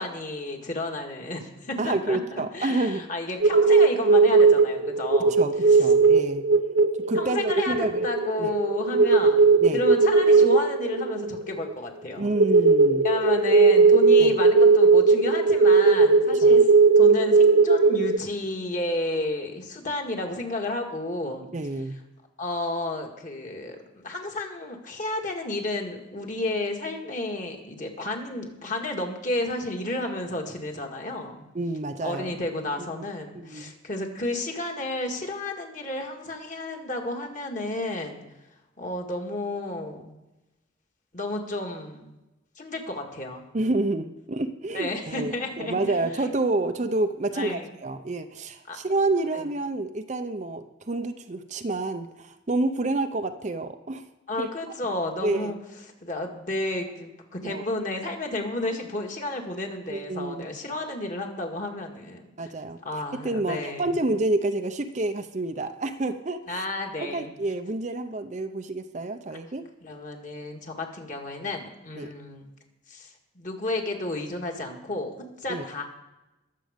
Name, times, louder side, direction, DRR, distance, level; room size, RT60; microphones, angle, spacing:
voice 1, 0.0-5.4 5.6-5.9 7.1-12.3 13.0-21.5 22.4-31.5 32.0-38.2 38.8-40.1 41.1-42.1 42.6-43.5 44.7-46.3 47.3-47.7 48.7-48.8 49.3-49.5 54.3-55.6 56.0-62.5 62.8-64.0 66.5-67.3 69.3-69.4 69.8-72.5 72.9-75.1 75.4-75.8, left 2 dB, 40° left, 2 dB, 1.9 m, -32 dB
voice 2, 1.8-3.1 5.4-6.5 7.1-8.1 8.4-8.5 9.6-9.8 12.2-13.1 14.2-14.4 16.4-16.6 21.5-22.0 31.5-32.3 33.0-33.1 33.4-33.7 43.5-54.1 54.4-54.5 55.2-55.5 57.4-57.6 59.9-60.5 62.4-62.8 63.2-66.6 67.0-69.7 71.9-72.1 75.5-75.6, right 2 dB, 35° right, 8 dB, 0.6 m, -28 dB
sound 1, 3.4-11.7 12.3-18.2, right 4 dB, 85° right, 0.8 m, -18 dB
21.0 x 7.6 x 5.1 m, 1.0 s
head